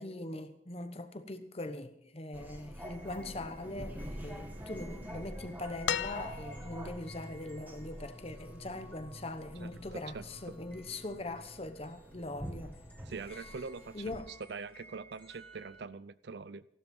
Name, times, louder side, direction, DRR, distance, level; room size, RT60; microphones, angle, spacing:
voice 1, 0.0-12.8 13.9-14.3, left 2 dB, 30° left, 1.0 m, -41 dB
sound 1, 2.3-14.2, equal, 10° right, 1.7 m, -46 dB
sound 2, 2.8-15.8, right 1 dB, 10° left, 2.5 m, -57 dB
sound 3, 5.9-6.9 8.4-8.5, left 9 dB, 80° left, 0.4 m, -35 dB
voice 2, 9.9-10.2 13.1-14.1 14.5-16.7, right 4 dB, 65° right, 0.5 m, -43 dB
15.0 x 12.5 x 5.4 m
head